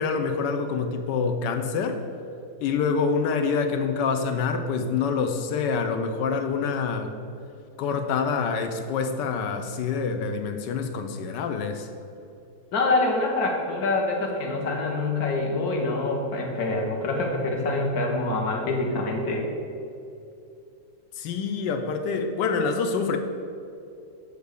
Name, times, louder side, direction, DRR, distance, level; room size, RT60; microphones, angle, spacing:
voice 1, 0.0-2.0 2.6-7.1 7.8-11.9 21.2-23.2, left 5 dB, 75° left, 6 dB, 1.2 m, -26 dB
voice 2, 12.7-19.5, left 2 dB, 55° left, 1 dB, 1.5 m, -25 dB
8.0 x 3.4 x 6.5 m, 2.6 s
omnidirectional pair, 2.0 m